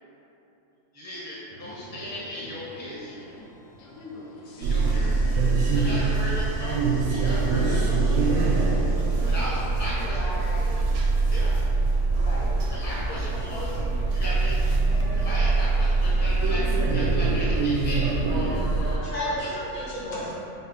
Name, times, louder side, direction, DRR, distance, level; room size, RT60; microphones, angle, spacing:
voice 1, 0.9-3.1 4.6-5.2 5.7-6.8 7.2-8.0 9.3-10.3 11.3-11.6 12.7-13.7 14.1-14.6 15.1-19.5, equal, 25° right, -8 dB, 0.3 m, -36 dB
sound 1, 1.5-9.4, right 1 dB, 65° right, 0.6 m, -42 dB
sound 2, 1.6-15.6, left 2 dB, 90° left, 1.1 m, -46 dB
sound 3, 4.6-19.0, right 3 dB, 85° right, 1.1 m, -23 dB
voice 2, 10.0-10.8 12.2-12.5 13.0-13.9 14.6-15.5, left 1 dB, 40° left, -5 dB, 0.5 m, -41 dB
voice 3, 18.4-20.4, left 1 dB, 70° left, -8 dB, 1.7 m, -33 dB
5.7 x 2.0 x 4.1 m, 3.0 s
omnidirectional pair, 1.5 m